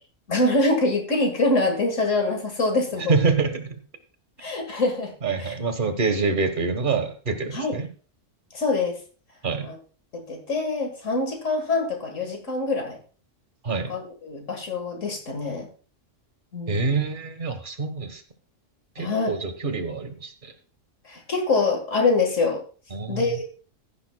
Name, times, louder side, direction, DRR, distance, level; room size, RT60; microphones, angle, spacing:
voice 1, 0.3-3.1 4.4-5.1 5.4-5.5 7.5-7.8 8.5-9.0 9.6-9.8 10.1-13.0 13.9-15.7 16.5-17.0 19.0-19.3 21.0-22.6 23.1-23.4, left 3 dB, 75° left, 3 dB, 2.1 m, -25 dB
voice 2, 3.1-3.8 5.2-7.9 9.4-9.7 13.6-13.9 16.7-18.2 19.0-20.5 22.9-23.2, right 4 dB, 40° right, 9 dB, 1.4 m, -26 dB
15.5 x 10.0 x 2.3 m, 0.39 s
omnidirectional pair, 1.3 m